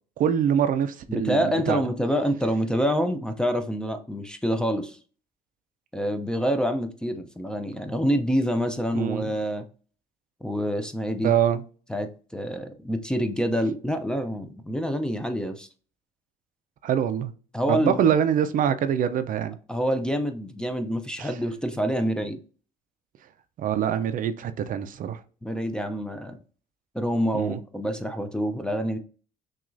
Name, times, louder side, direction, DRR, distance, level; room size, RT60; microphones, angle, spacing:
voice 1, 0.2-1.8 8.9-9.3 11.2-11.6 16.8-17.3 17.7-19.6 21.2-21.3 23.6-25.2 27.3-27.6, right 9 dB, 55° right, 0.4 m, -24 dB
voice 2, 1.1-5.0 5.9-9.7 10.4-11.3 11.9-15.7 17.5-18.0 19.7-22.4 25.4-26.4 26.9-29.0, equal, 5° left, 0.4 m, -27 dB
5.9 x 2.4 x 2.5 m
cardioid pair, 110°, 17 cm